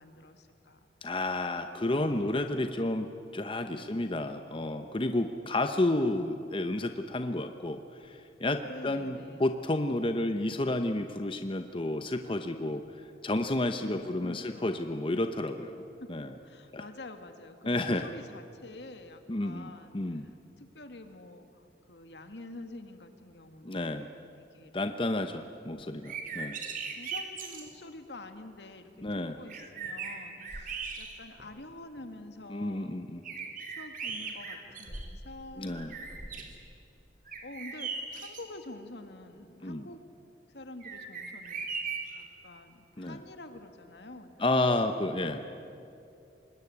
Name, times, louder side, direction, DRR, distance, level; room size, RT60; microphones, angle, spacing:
voice 1, 0.0-0.9 1.6-2.8 3.7-4.1 8.7-9.5 13.8-14.9 16.0-24.1 24.4-25.2 25.7-25.9 26.3-26.5 26.9-33.0 33.4-33.5 33.8-36.6 37.4-40.0 40.5-41.7 42.1-44.4 45.1-45.5, left 2 dB, 70° left, 7 dB, 2.1 m, -48 dB
voice 2, 1.0-3.1 3.3-15.8 16.1-16.3 16.7-16.9 17.7-18.1 19.3-20.3 23.6-24.1 24.7-26.6 29.0-29.4 32.5-33.2 35.6-35.9 39.6-39.9 43.0-43.2 44.4-45.6, left 2 dB, 30° left, 7 dB, 0.9 m, -31 dB
sound 1, 25.9-27.7 29.1-29.2 29.5-31.4 32.0-32.1 33.2-35.3 35.7-36.5 37.3-38.4 40.8-42.2, right 5 dB, 50° right, 3.1 m, -39 dB
25.0 x 20.5 x 9.7 m, 2.6 s
head